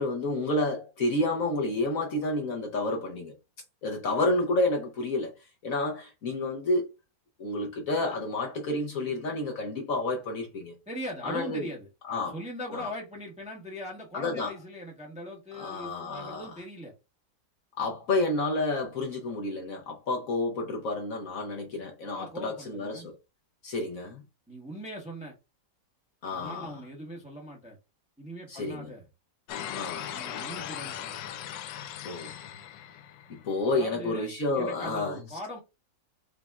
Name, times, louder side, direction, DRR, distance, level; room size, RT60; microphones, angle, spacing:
voice 1, 0.0-3.3 3.8-5.3 5.6-6.9 7.4-10.7 11.2-11.7 12.1-12.4 12.7-12.9 14.1-14.5 15.6-16.5 17.8-23.2 23.6-24.2 26.2-26.7 28.5-28.9 29.7-30.1 32.0-32.5 33.3-35.2, left 2 dB, 55° left, 1.1 m, -30 dB
voice 2, 10.9-16.9 22.2-23.1 24.5-25.3 26.3-27.8 28.2-29.0 30.1-31.2 33.6-35.6, equal, 5° right, 0.8 m, -40 dB
sound 1, 29.5-33.6, left 10 dB, 80° left, 1.3 m, -38 dB
5.0 x 3.4 x 2.4 m
omnidirectional pair, 2.0 m